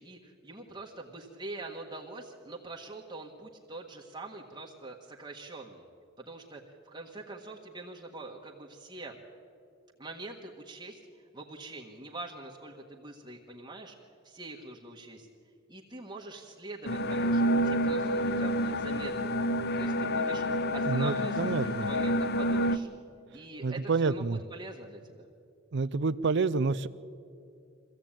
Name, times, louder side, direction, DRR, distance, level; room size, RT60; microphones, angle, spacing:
voice 1, 0.0-5.9 6.2-9.2 10.0-11.0 11.3-13.9 14.2-15.3 15.7-19.5 19.8-20.4 20.7-22.9 23.3-25.3, right 2 dB, 20° right, -1 dB, 1.5 m, -44 dB
sound 1, 16.8-22.8, equal, 55° left, 0.7 m, -28 dB
voice 2, 20.9-21.9 23.6-24.4 25.7-26.9, right 4 dB, 60° right, 14 dB, 0.5 m, -28 dB
23.5 x 16.0 x 8.9 m, 2.5 s
head